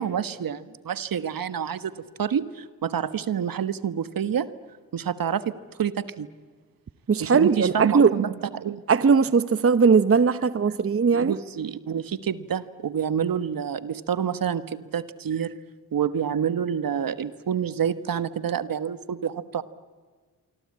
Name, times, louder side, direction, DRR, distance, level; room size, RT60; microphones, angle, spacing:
voice 1, 0.0-4.5 4.9-6.3 7.2-8.8 10.7-10.8 11.1-15.5 15.9-19.6, right 8 dB, 60° right, 13 dB, 1.4 m, -28 dB
voice 2, 7.1-8.1 8.9-11.4, right 5 dB, 35° right, 14 dB, 1.0 m, -19 dB
26.0 x 24.5 x 8.7 m, 1.5 s
supercardioid pair, 45°, 38 cm